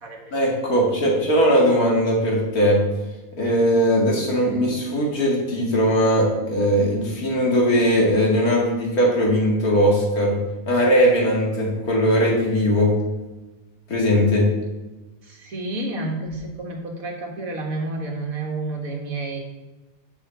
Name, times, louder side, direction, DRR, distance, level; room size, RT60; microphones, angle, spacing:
voice 1, 0.3-2.8 3.4-10.4 10.7-12.9 13.9-14.5, equal, 85° left, -2 dB, 2.5 m, -19 dB
voice 2, 15.2-19.4, right 2 dB, 70° right, 1 dB, 2.0 m, -30 dB
6.7 x 5.7 x 7.0 m, 1.1 s
omnidirectional pair, 1.5 m